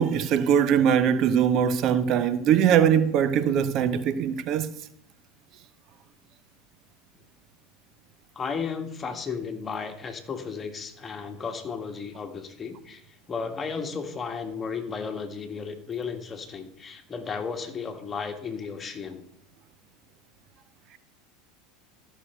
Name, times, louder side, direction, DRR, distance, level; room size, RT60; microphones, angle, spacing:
voice 1, 0.0-4.7, right 8 dB, 50° right, 0.7 m, -21 dB
voice 2, 8.3-19.2, left 5 dB, 25° left, 1.7 m, -34 dB
13.5 x 6.4 x 4.5 m
hypercardioid pair, 80°, 0 cm